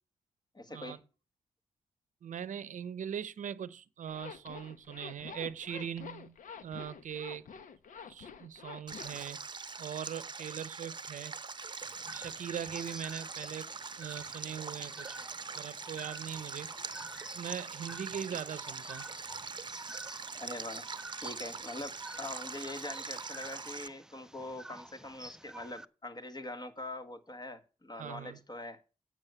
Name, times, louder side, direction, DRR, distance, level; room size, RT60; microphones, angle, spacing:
voice 1, 0.5-1.0 18.3-18.4 20.4-20.9 21.2-28.8, left 2 dB, 30° left, 1.5 m, -43 dB
voice 2, 2.2-7.5 8.1-9.4 9.8-11.3 12.1-13.7 14.0-15.2 15.6-16.7 17.3-19.1 27.9-28.4, right 8 dB, 70° right, 0.7 m, -41 dB
Zipper (clothing), 4.1-9.2, left 6 dB, 75° left, 0.9 m, -48 dB
Stream, 8.9-23.9, right 4 dB, 35° right, 0.8 m, -43 dB
sound 1, 11.8-25.8, right 1 dB, 5° right, 0.5 m, -50 dB
8.9 x 6.3 x 8.0 m
cardioid pair, 55°, 13 cm